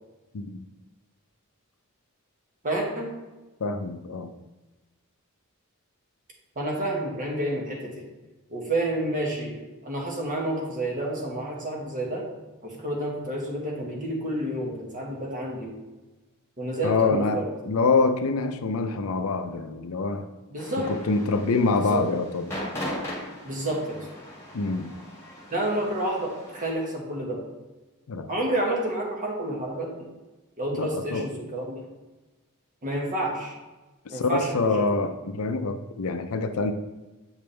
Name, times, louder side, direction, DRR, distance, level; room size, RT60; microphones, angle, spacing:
voice 1, 2.6-3.1 6.5-8.0 8.5-12.2 12.6-15.7 16.6-17.5 20.5-20.9 21.7-22.0 23.4-24.1 25.5-27.4 28.3-30.1 30.6-31.8 32.8-33.5 34.1-34.8, right 1 dB, 40° right, -1 dB, 1.5 m, -29 dB
voice 2, 3.6-4.3 16.8-20.3 20.9-22.6 24.5-24.9 28.1-28.3 30.8-31.3 34.1-36.7, left 3 dB, 75° left, 9 dB, 0.5 m, -25 dB
sound 1, 20.6-26.7, left 1 dB, 15° left, 1.9 m, -39 dB
8.0 x 5.2 x 3.3 m, 1.2 s
head